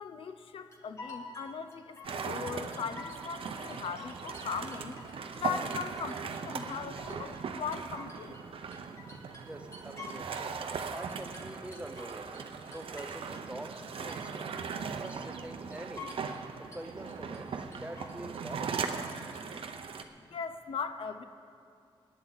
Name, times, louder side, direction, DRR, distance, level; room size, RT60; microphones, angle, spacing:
voice 1, 0.0-5.0 5.3-8.4 20.3-21.2, left 6 dB, 70° left, 9 dB, 0.6 m, -39 dB
sound 1, 0.7-2.4 2.7-3.4 3.7-5.4 5.7-6.5 6.7-8.5 8.7-10.5 10.7-13.4 13.7-14.5 14.7-15.4 15.7-16.4 16.7-17.4 17.7-18.4 18.7-19.4, left 3 dB, 30° left, 1.7 m, -49 dB
sound 2, 2.0-20.0, right 5 dB, 75° right, 0.7 m, -39 dB
voice 2, 9.4-10.5 10.9-14.5 15.0-16.3 16.7-18.9, right 1 dB, 10° right, 6 dB, 0.6 m, -45 dB
25.0 x 10.5 x 4.0 m, 2.5 s
wide cardioid pair, 180°, 10 cm